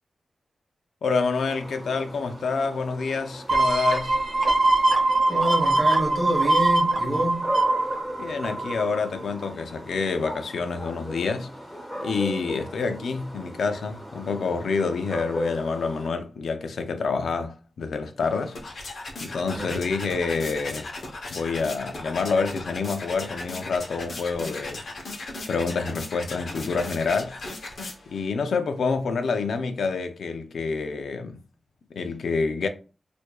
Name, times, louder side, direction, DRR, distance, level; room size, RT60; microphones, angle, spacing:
voice 1, 1.0-4.2 8.2-11.5 12.0-18.9 19.2-20.9 21.3-24.8 25.5-27.4 28.1-31.4 31.9-32.7, left 4 dB, 90° left, 0.5 m, -27 dB
sound 1, 1.3-16.1, equal, 10° left, 1.2 m, -38 dB
sound 2, 3.5-9.0 9.4-9.5, right 2 dB, 60° right, 1.0 m, -22 dB
voice 2, 5.3-7.5 19.5-19.9, right 1 dB, 25° right, 1.1 m, -27 dB
sound 3, 18.2-28.3, left 2 dB, 60° left, 0.8 m, -37 dB
4.5 x 2.6 x 2.3 m
wide cardioid pair, 125°, 0 cm